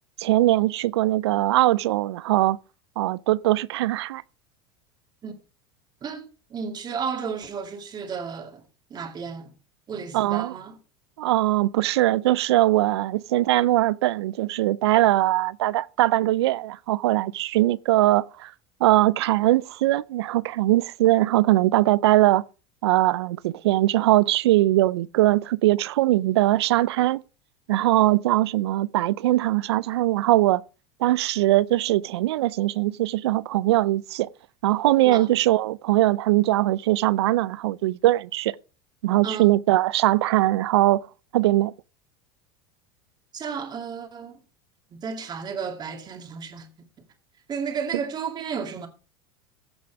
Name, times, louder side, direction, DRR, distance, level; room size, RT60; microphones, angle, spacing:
voice 1, 0.2-2.6 3.0-4.2 10.1-10.5 11.2-18.5 18.8-22.4 22.8-27.2 27.7-30.6 31.0-34.3 34.6-38.5 39.0-41.0 41.3-41.7, right 16 dB, 85° right, 0.5 m, -21 dB
voice 2, 6.0-8.6 8.9-9.5 9.9-10.8 35.0-35.3 39.2-39.5 43.3-44.4 44.9-46.7 47.5-48.9, right 6 dB, 30° right, 2.4 m, -33 dB
15.5 x 6.2 x 4.7 m
supercardioid pair, 110°, 13 cm